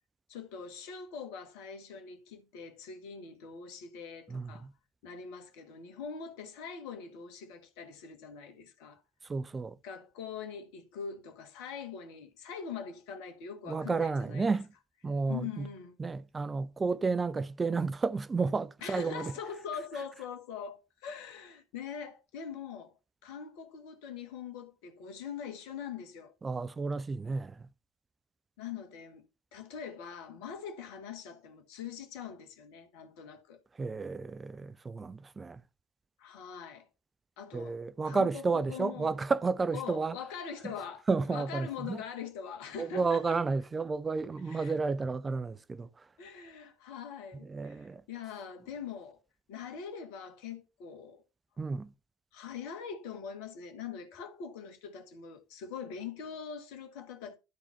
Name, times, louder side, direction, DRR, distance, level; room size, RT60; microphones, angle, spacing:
voice 1, 0.3-4.7 5.0-9.0 9.8-14.5 15.3-16.0 18.8-22.9 23.2-26.3 28.6-29.2 29.5-33.6 36.2-36.9 37.4-37.8 38.0-39.1 39.7-43.4 44.5-44.8 46.2-49.2 49.5-51.2 52.3-57.3, left 7 dB, 70° left, 1.7 m, -43 dB
voice 2, 4.3-4.7 9.2-9.8 13.7-14.7 15.0-15.7 16.0-19.3 26.4-27.7 33.8-35.6 37.5-40.2 40.6-40.7 41.1-42.0 42.8-46.0 47.4-48.0 51.6-51.9, right 4 dB, 25° right, 0.6 m, -32 dB
12.5 x 4.2 x 5.7 m
figure-of-eight pair, 55°, 0 cm